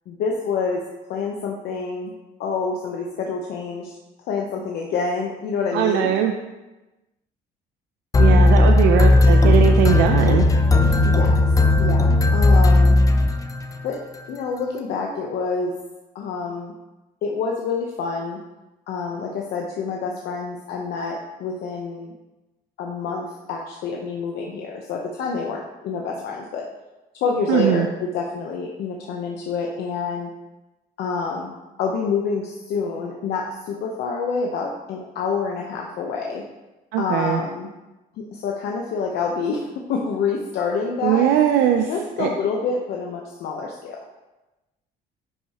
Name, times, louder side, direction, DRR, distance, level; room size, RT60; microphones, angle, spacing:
voice 1, 0.1-0.8 1.1-2.1 2.4-3.9 4.3-6.1 8.3-8.8 11.0-11.4 11.8-13.0 13.8-14.0 14.3-15.7 16.1-16.7 17.2-18.4 18.9-22.2 22.8-26.7 27.2-30.3 31.0-31.5 31.8-36.4 37.0-37.7 38.2-41.3 41.9-44.0, left 5 dB, 75° left, 0 dB, 0.9 m, -27 dB
voice 2, 5.7-6.3 8.2-10.4 10.8-11.0 27.5-27.9 36.9-37.4 41.0-41.9 42.2-42.3, right 10 dB, 90° right, 4 dB, 0.6 m, -20 dB
sound 1, 8.1-13.8, left 2 dB, 20° left, 0.5 m, -15 dB
10.5 x 5.6 x 3.0 m, 1.1 s
cardioid pair, 110°, 17 cm